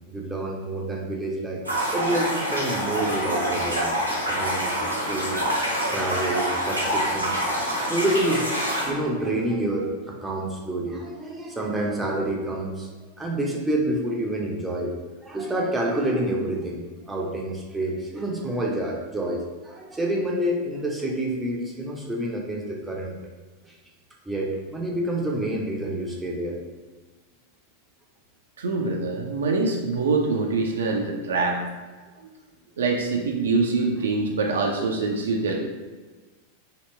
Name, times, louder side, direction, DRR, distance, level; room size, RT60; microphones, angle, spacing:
voice 1, 0.1-1.6 1.9-4.0 4.3-5.4 5.9-7.3 7.8-12.9 13.2-14.9 15.2-23.2 23.6-23.8 24.3-26.6, right 1 dB, 10° right, -2 dB, 0.6 m, -28 dB
sound 1, 1.6-8.9, equal, 85° right, 0.9 m, -26 dB
voice 2, 28.6-31.6 32.8-35.5, right 3 dB, 65° right, 1 dB, 0.4 m, -24 dB
2.9 x 2.8 x 3.2 m, 1.3 s
figure-of-eight pair, 90°, 0 cm